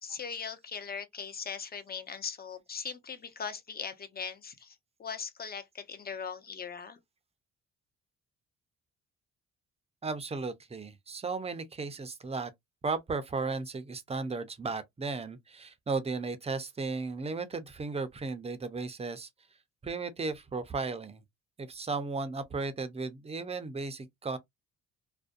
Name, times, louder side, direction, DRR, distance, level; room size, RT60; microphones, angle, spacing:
voice 1, 0.0-7.0, left 6 dB, 30° left, 0.6 m, -40 dB
voice 2, 10.0-12.5 12.8-19.3 19.8-21.2 21.6-24.4, right 4 dB, 20° right, 0.5 m, -35 dB
2.5 x 2.1 x 2.4 m
cardioid pair, 90°, 30 cm